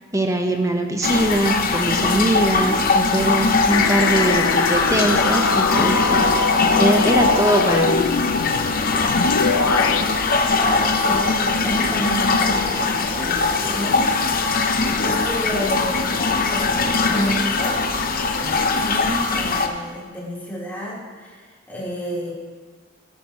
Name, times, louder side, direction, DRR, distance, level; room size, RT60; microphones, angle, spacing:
voice 1, 0.1-8.1, right 1 dB, 15° right, 4 dB, 1.0 m, -22 dB
sound 1, 1.0-19.7, left 3 dB, 45° left, 0.8 m, -21 dB
sound 2, 3.7-10.0, left 4 dB, 85° left, 0.5 m, -22 dB
voice 2, 10.6-14.1 15.0-17.8 18.3-22.3, equal, 10° left, -8 dB, 3.6 m, -30 dB
12.0 x 12.0 x 3.0 m, 1.4 s
head